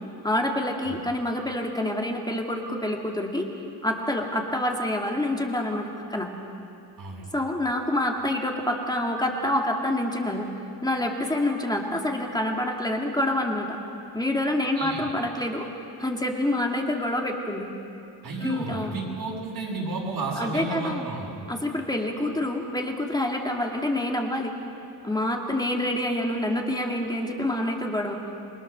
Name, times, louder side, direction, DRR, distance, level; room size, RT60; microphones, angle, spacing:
voice 1, 0.2-3.5 3.8-6.3 7.3-10.5 10.8-13.8 14.1-15.7 16.0-17.7 18.4-18.9 20.4-21.1 21.5-24.5 25.0-28.3, left 1 dB, 10° left, 1 dB, 2.4 m, -27 dB
voice 2, 14.7-15.1 18.2-21.3, right 3 dB, 65° right, -4 dB, 6.7 m, -32 dB
28.5 x 22.0 x 6.8 m, 2.7 s
cardioid pair, 115°, 39 cm